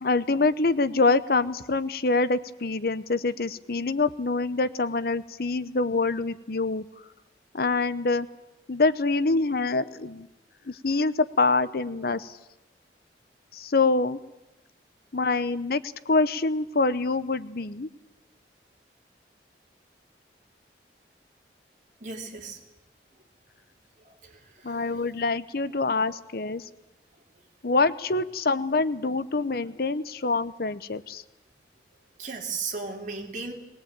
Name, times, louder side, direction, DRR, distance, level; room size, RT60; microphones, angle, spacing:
voice 1, 0.0-6.8 7.5-8.3 8.7-10.3 10.7-12.4 13.5-14.2 15.1-17.9 24.6-26.7 27.6-31.2, left 3 dB, 55° left, 14 dB, 0.8 m, -25 dB
voice 2, 22.0-22.7 24.0-25.0 32.2-33.5, right 4 dB, 45° right, 1 dB, 3.0 m, -36 dB
21.0 x 18.5 x 8.9 m, 0.94 s
head